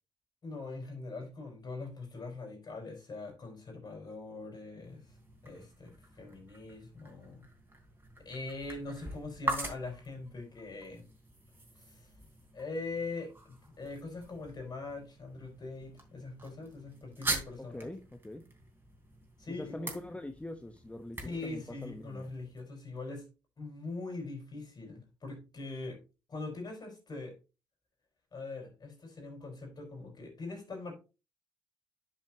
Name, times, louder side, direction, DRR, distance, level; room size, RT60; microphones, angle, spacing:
voice 1, 0.4-5.2 5.4-7.5 8.2-11.0 11.8-12.1 12.5-17.9 19.4-19.9 21.2-23.3 23.6-26.0 26.3-27.3 28.3-30.9, left 3 dB, 45° left, 4.8 m, -42 dB
sound 1, 4.8-22.6, right 2 dB, 20° right, 3.4 m, -43 dB
voice 2, 17.6-18.4 19.5-22.2, left 1 dB, 15° left, 1.1 m, -43 dB
10.5 x 6.2 x 2.9 m
hypercardioid pair, 45°, 10 cm